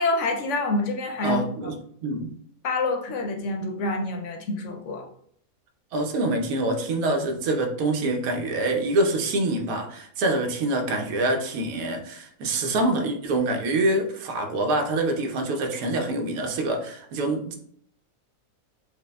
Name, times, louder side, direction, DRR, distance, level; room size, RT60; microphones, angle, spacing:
voice 1, 0.0-1.7 2.6-5.0, left 2 dB, 65° left, 3 dB, 0.8 m, -27 dB
voice 2, 1.2-2.3 5.9-17.6, right 2 dB, 80° right, 3 dB, 1.1 m, -25 dB
6.1 x 2.1 x 2.2 m, 0.65 s
omnidirectional pair, 1.5 m